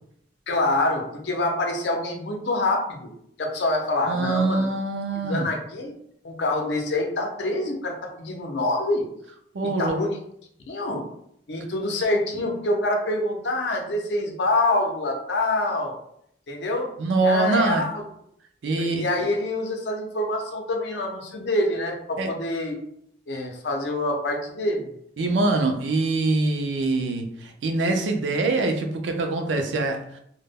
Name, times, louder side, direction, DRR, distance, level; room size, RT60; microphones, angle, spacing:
voice 1, 0.5-3.1 3.4-4.7 5.2-5.9 6.2-9.0 9.6-10.1 10.7-11.0 11.5-15.9 16.5-16.9 17.2-18.0 18.7-22.7 23.3-24.9, left 2 dB, 70° left, 0.5 m, -26 dB
voice 2, 4.1-5.5 9.5-10.0 17.0-17.9 18.6-19.1 22.2-22.3 25.2-30.2, right 2 dB, 90° right, 0.4 m, -24 dB
2.1 x 2.0 x 3.4 m
head